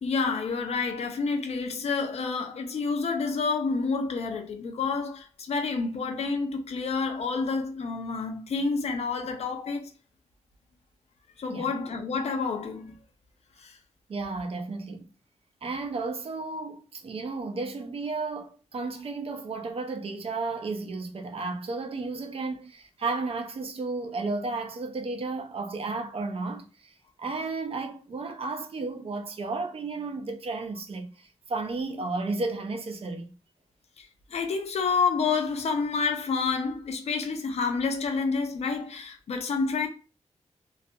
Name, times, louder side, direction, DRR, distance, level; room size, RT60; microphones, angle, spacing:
voice 1, 0.0-9.9 11.4-12.9 13.6-13.8 34.0-39.9, left 4 dB, 70° left, 0.4 m, -29 dB
voice 2, 14.1-15.1 15.6-33.3, right 3 dB, 60° right, 0.5 m, -33 dB
2.4 x 2.3 x 2.6 m
wide cardioid pair, 125°, 11 cm